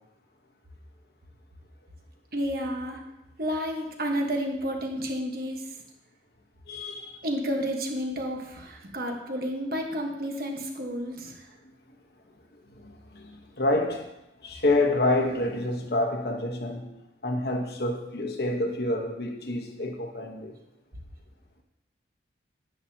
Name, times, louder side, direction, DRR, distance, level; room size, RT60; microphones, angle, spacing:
voice 1, 2.3-3.0 3.4-5.6 7.2-11.4, equal, 55° right, 1.3 m, -31 dB
voice 2, 6.7-7.2 11.6-11.7 12.8-14.1 14.4-16.9 17.2-20.6, left 2 dB, 60° left, 1.1 m, -28 dB
10.0 x 8.4 x 2.8 m
head